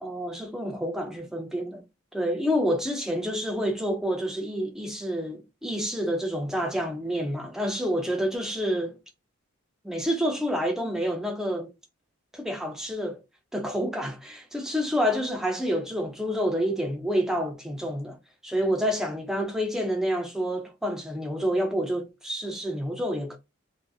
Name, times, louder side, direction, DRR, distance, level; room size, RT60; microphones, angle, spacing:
voice 1, 0.0-1.8 2.1-9.0 9.8-11.7 12.3-13.2 13.5-18.2 18.4-23.4, equal, ahead, 0.4 m, -28 dB
2.6 x 2.4 x 2.2 m
head